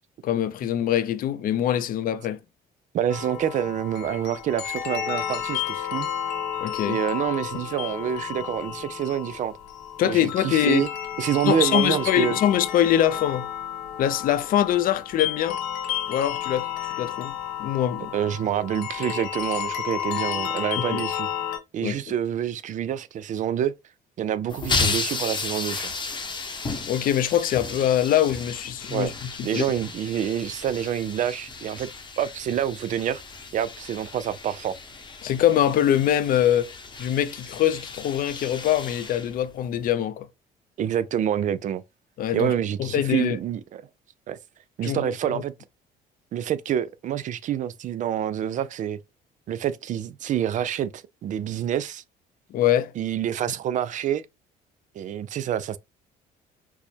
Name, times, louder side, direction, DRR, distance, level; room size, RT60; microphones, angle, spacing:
voice 1, 0.2-2.4 6.6-7.0 10.0-10.8 11.5-13.5 14.0-15.6 16.1-16.7 17.0-18.1 20.8-21.0 21.8-22.0 26.9-29.6 35.2-36.7 37.0-40.3 42.2-42.5 42.8-43.4 44.8-45.4 52.5-52.9, left 11 dB, 55° left, 0.4 m, -23 dB
voice 2, 2.9-6.1 6.9-9.5 10.0-10.9 11.2-12.4 18.1-21.3 21.7-23.7 24.2-25.9 28.9-29.1 29.4-31.9 32.2-33.2 33.5-34.7 40.8-41.8 42.3-43.8 44.3-44.4 44.8-45.5 46.3-49.0 49.5-52.0 53.0-54.2 55.0-55.8, right 10 dB, 50° right, 0.4 m, -27 dB
sound 1, 3.1-21.6, left 10 dB, 85° left, 0.8 m, -31 dB
sound 2, 24.5-39.9, left 4 dB, 25° left, 0.8 m, -34 dB
4.5 x 2.1 x 2.7 m
cardioid pair, 110°, 17 cm